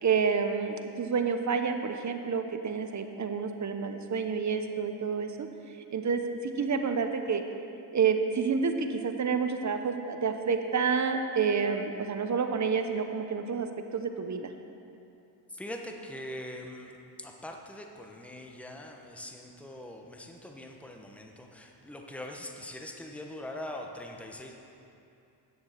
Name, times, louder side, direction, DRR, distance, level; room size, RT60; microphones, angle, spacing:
voice 1, 0.0-5.5 5.9-7.4 7.9-13.7 13.9-14.5, right 5 dB, 35° right, 7 dB, 0.9 m, -29 dB
voice 2, 15.5-24.5, left 1 dB, 5° left, 2 dB, 1.0 m, -42 dB
9.7 x 7.0 x 6.6 m, 2.6 s
cardioid pair, 85°, 48 cm